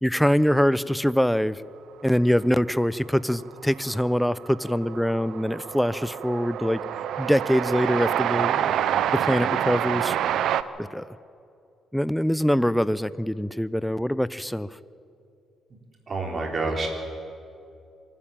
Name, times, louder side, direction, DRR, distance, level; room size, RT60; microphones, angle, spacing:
voice 1, 0.0-1.6 2.0-6.8 7.2-8.7 9.1-10.2 10.8-11.0 11.9-14.7, equal, ahead, 17 dB, 0.6 m, -24 dB
Train, 3.2-3.3 3.5-10.6, right 10 dB, 80° right, 0.7 m, -27 dB
voice 2, 16.1-16.9, right 3 dB, 40° right, 1 dB, 4.4 m, -27 dB
24.0 x 13.0 x 8.9 m, 2.5 s
cardioid pair, 90°, 0 cm